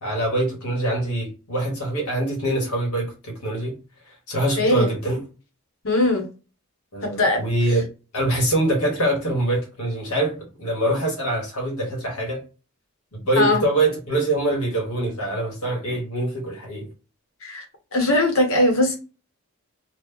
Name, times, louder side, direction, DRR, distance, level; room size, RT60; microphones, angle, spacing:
voice 1, 0.0-3.8 4.3-5.2 6.9-7.9 8.1-12.4 13.1-16.9, right 1 dB, 85° left, 1.4 m, -24 dB
voice 2, 4.6-4.9 5.8-6.2 7.0-7.5 13.4-13.6 17.4-17.6 17.9-18.9, left 1 dB, 65° left, 1.1 m, -20 dB
3.1 x 2.3 x 3.6 m
head